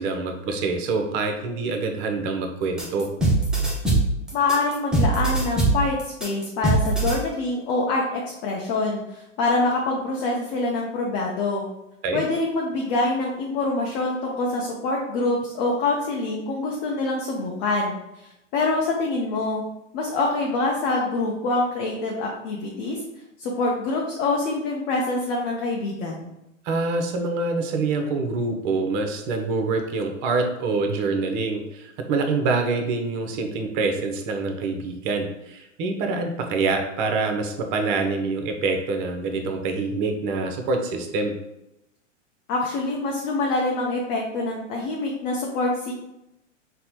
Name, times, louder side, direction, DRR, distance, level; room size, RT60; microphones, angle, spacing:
voice 1, 0.0-3.1 12.0-12.2 26.6-41.3, right 3 dB, 40° right, 4 dB, 0.6 m, -25 dB
sound 1, 2.8-7.2, right 2 dB, ahead, 0.4 m, -22 dB
voice 2, 4.3-11.7 12.1-19.6 19.9-23.0 23.4-26.3 42.5-45.9, left 2 dB, 40° left, -2 dB, 0.6 m, -25 dB
4.2 x 2.1 x 2.8 m, 0.88 s
hypercardioid pair, 110°, 38 cm